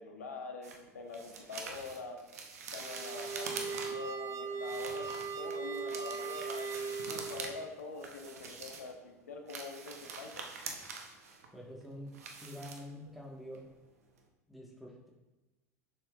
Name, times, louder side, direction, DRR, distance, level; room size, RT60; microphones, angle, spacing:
voice 1, 0.0-2.2 2.7-5.0 5.4-10.4, left 4 dB, 80° left, 4 dB, 1.1 m, -45 dB
sound 1, 0.6-4.1 4.6-7.5 7.8-9.0 9.3-13.3 13.5-13.8 14.1-14.2, right 4 dB, 75° right, 1.0 m, -45 dB
sound 2, 2.8-7.7, right 4 dB, 35° right, 0.8 m, -39 dB
voice 2, 11.5-12.1 12.4-13.6 14.5-15.1, left 1 dB, ahead, -3 dB, 1.6 m, -46 dB
10.0 x 6.8 x 2.5 m, 1.1 s
figure-of-eight pair, 80°, 8 cm